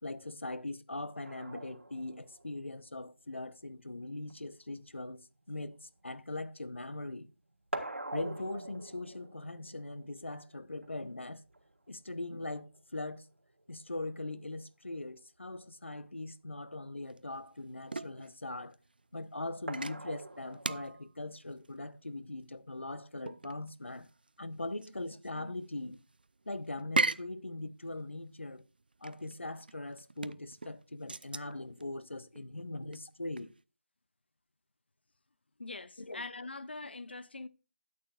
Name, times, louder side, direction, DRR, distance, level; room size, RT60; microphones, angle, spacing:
voice 1, 0.0-7.3 8.1-11.4 11.9-13.3 13.7-18.8 19.1-24.1 24.4-26.0 26.5-28.6 29.0-33.5 36.0-36.2 36.8-37.0, left 2 dB, 85° left, 1.0 m, -41 dB
sound 1, 1.2-6.9 7.2-14.2 15.6-15.7 16.1-16.2 19.7-20.9, right 2 dB, 80° right, 1.7 m, -46 dB
sound 2, 17.1-33.6, right 3 dB, 50° right, 0.5 m, -40 dB
voice 2, 35.6-37.5, left 3 dB, 60° left, 0.7 m, -43 dB
13.0 x 8.7 x 2.4 m
figure-of-eight pair, 170°, 6 cm